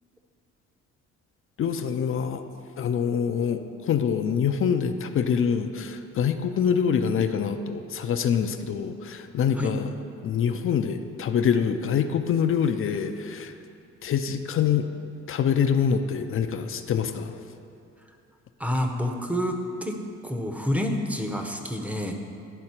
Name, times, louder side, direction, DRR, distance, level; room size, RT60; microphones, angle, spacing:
voice 1, 1.6-2.4 2.8-9.9 10.2-13.5 14.0-14.9 15.3-17.3, left 7 dB, 45° left, 8 dB, 0.4 m, -25 dB
voice 2, 18.6-22.1, equal, 5° right, 4 dB, 0.7 m, -28 dB
11.0 x 3.8 x 4.4 m, 2.6 s
cardioid pair, 90°, 30 cm